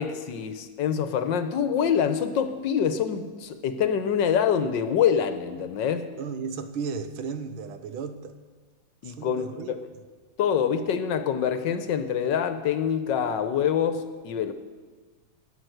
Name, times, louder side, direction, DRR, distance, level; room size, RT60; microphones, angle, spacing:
voice 1, 0.0-6.1 9.0-9.8 10.4-14.5, left 8 dB, 65° left, 10 dB, 1.4 m, -25 dB
voice 2, 6.2-8.4 9.0-9.7, right 5 dB, 80° right, 10 dB, 1.7 m, -34 dB
13.5 x 9.6 x 7.9 m, 1.4 s
omnidirectional pair, 2.2 m